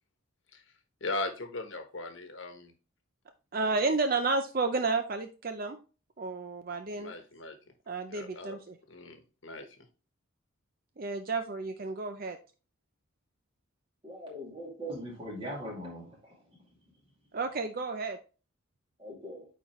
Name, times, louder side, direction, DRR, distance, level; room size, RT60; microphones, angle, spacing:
voice 1, 1.0-2.7 7.0-7.6 8.1-8.6 8.9-9.9, left 2 dB, 60° left, 6 dB, 1.1 m, -38 dB
voice 2, 3.5-5.8 6.2-7.1 7.9-8.6 11.0-12.4 17.3-18.2, right 3 dB, 45° right, 7 dB, 0.5 m, -31 dB
voice 3, 14.0-16.4 19.0-19.5, equal, 25° right, -2 dB, 2.4 m, -40 dB
9.0 x 4.1 x 3.0 m, 0.34 s
head